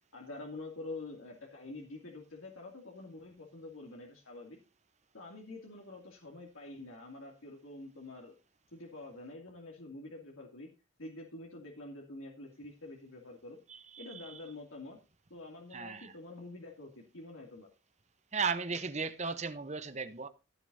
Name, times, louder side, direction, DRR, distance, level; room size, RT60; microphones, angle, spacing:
voice 1, 0.1-4.6 5.1-8.4 8.7-10.7 11.0-13.6 14.0-15.0 15.3-17.7, left 2 dB, 90° left, 2.6 m, -47 dB
voice 2, 13.7-14.1 15.7-16.1 18.3-20.3, right 5 dB, 35° right, 0.9 m, -35 dB
16.0 x 9.9 x 2.7 m
head